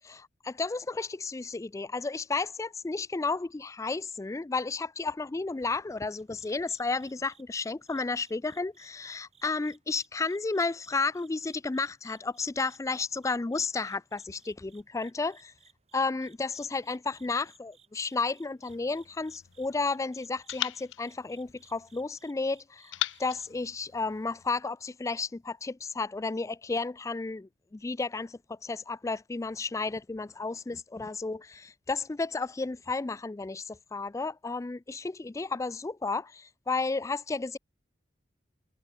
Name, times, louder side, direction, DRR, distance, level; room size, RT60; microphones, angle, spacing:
voice 1, 0.0-15.5 15.9-37.6, left 3 dB, 15° left, 0.3 m, -32 dB
sound 1, 6.2-23.5, right 7 dB, 35° right, 7.6 m, -64 dB
sound 2, 18.7-19.9 20.5-22.1 22.9-24.5, left 14 dB, 75° left, 0.5 m, -39 dB
head